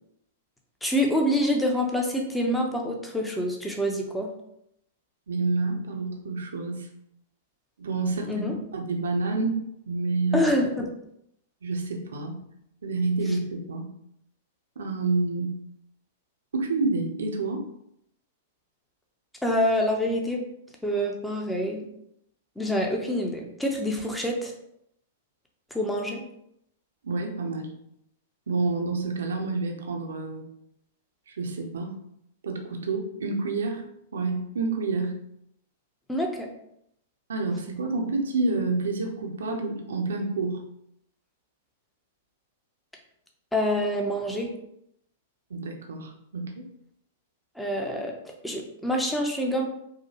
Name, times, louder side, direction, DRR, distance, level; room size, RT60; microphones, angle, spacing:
voice 1, 0.8-4.3 8.3-8.5 10.3-10.9 19.4-20.4 20.8-21.9 22.6-24.5 25.7-26.2 36.1-36.5 43.5-44.5 47.6-48.1 48.4-49.7, equal, 5° left, 1 dB, 0.7 m, -26 dB
voice 2, 5.3-6.9 7.8-8.5 8.7-9.6 9.9-10.5 11.6-12.4 12.8-13.9 14.8-15.6 16.5-17.6 27.0-27.7 28.5-30.4 31.3-31.9 32.4-33.8 34.1-35.2 37.3-40.6 45.5-46.7, right 3 dB, 70° right, 3 dB, 0.7 m, -28 dB
4.8 x 2.2 x 2.9 m, 0.75 s
figure-of-eight pair, 100°, 0 cm